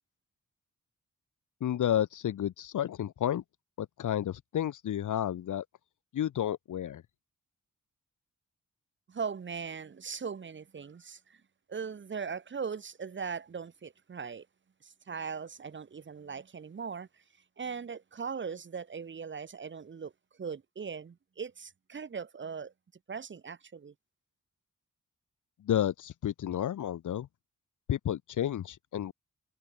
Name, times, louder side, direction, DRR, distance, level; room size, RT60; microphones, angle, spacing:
voice 1, 1.6-3.4 3.8-5.6 6.1-7.0 25.6-27.3 27.9-29.1, left 11 dB, 75° left, 0.8 m, -31 dB
voice 2, 9.1-11.4 11.7-14.5 14.8-17.1 17.6-20.1 20.4-22.7 23.1-23.9, right 6 dB, 40° right, 0.9 m, -39 dB
wide cardioid pair, 110°, 31 cm